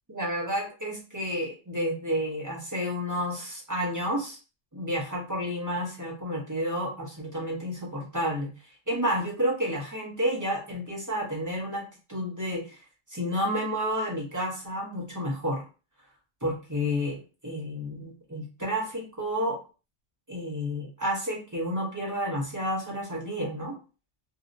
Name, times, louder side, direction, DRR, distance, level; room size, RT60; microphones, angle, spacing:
voice 1, 0.1-4.4 4.7-12.8 13.1-15.6 16.4-19.6 20.3-23.8, equal, 20° right, -4 dB, 0.5 m, -30 dB
2.6 x 2.0 x 2.5 m, 0.34 s
omnidirectional pair, 1.2 m